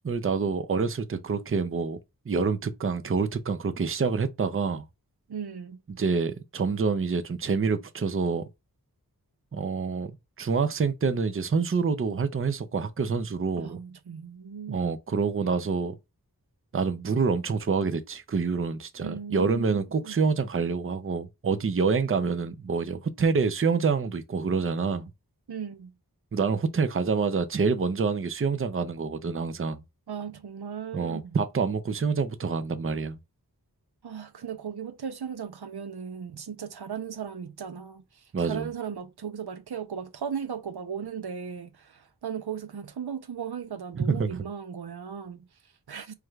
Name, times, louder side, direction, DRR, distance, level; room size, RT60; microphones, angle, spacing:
voice 1, 0.0-2.0 2.3-4.8 5.9-8.4 9.5-10.1 10.4-13.8 14.7-15.9 16.7-25.1 26.3-29.8 30.9-33.2 38.3-38.7 44.0-44.4, right 5 dB, 35° right, 0.5 m, -27 dB
voice 2, 5.3-5.8 13.6-14.9 19.0-20.2 25.5-25.9 30.1-31.4 34.0-46.1, right 7 dB, 90° right, 0.6 m, -37 dB
4.7 x 3.2 x 2.3 m
wide cardioid pair, 50°, 38 cm